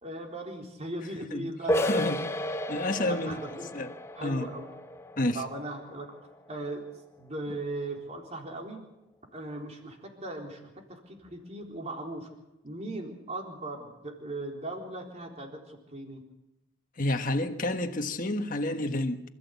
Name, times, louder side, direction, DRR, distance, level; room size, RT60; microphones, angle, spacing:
voice 1, 0.0-1.8 2.2-2.3 3.0-3.7 4.1-4.7 5.3-6.1 6.5-6.9 7.2-8.8 9.3-12.3 12.6-16.2, right 2 dB, 35° right, 3.9 m, -38 dB
sound 1, 1.7-7.2, equal, 15° left, 0.8 m, -33 dB
voice 2, 1.8-2.4 2.7-3.3 3.7-3.9 4.2-4.5 5.2-5.4 17.0-19.2, left 1 dB, 40° left, 1.5 m, -29 dB
26.5 x 14.0 x 8.3 m
head